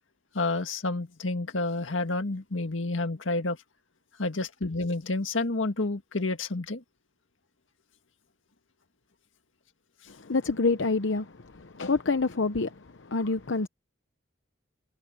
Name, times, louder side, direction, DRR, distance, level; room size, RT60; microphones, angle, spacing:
voice 1, 0.3-3.6 4.2-6.8, left 2 dB, 90° left, 1.8 m, -29 dB
voice 2, 10.2-13.7, left 3 dB, 70° left, 0.9 m, -27 dB
head